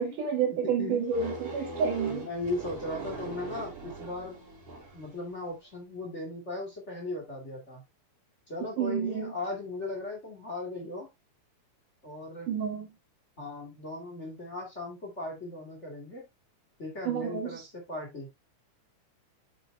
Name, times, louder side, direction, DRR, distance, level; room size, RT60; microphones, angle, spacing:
voice 1, 0.0-2.3 8.8-9.3 12.5-12.9 17.0-17.6, right 6 dB, 75° right, 3.3 m, -29 dB
voice 2, 0.6-1.1 1.5-1.8 2.1-4.4 4.9-7.8 8.5-11.1 12.0-12.5 13.4-16.3 16.8-18.3, left 2 dB, 25° left, 2.4 m, -37 dB
sound 1, 1.1-5.2, right 4 dB, 45° right, 4.9 m, -40 dB
8.6 x 7.2 x 2.2 m
omnidirectional pair, 3.7 m